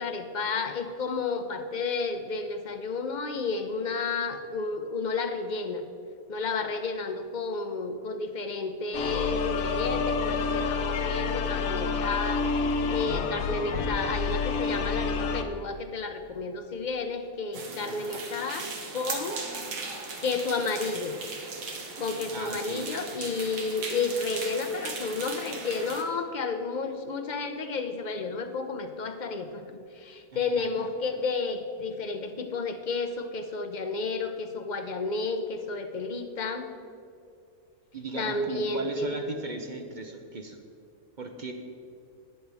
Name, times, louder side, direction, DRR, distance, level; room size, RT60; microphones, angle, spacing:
voice 1, 0.0-5.8 6.3-12.5 12.9-18.7 18.9-19.4 20.2-21.2 22.0-29.6 29.9-36.7 38.2-39.2, left 4 dB, 40° left, 7 dB, 0.7 m, -31 dB
sound 1, 8.9-15.4, left 4 dB, 80° left, 1.2 m, -28 dB
voice 2, 17.5-18.2 22.3-22.9 30.3-30.9 37.9-40.6 41.2-41.5, right 3 dB, 40° right, 4 dB, 0.7 m, -38 dB
sound 2, 17.5-26.0, right 4 dB, 85° right, 1.7 m, -38 dB
18.5 x 8.1 x 3.5 m, 2.5 s
omnidirectional pair, 1.4 m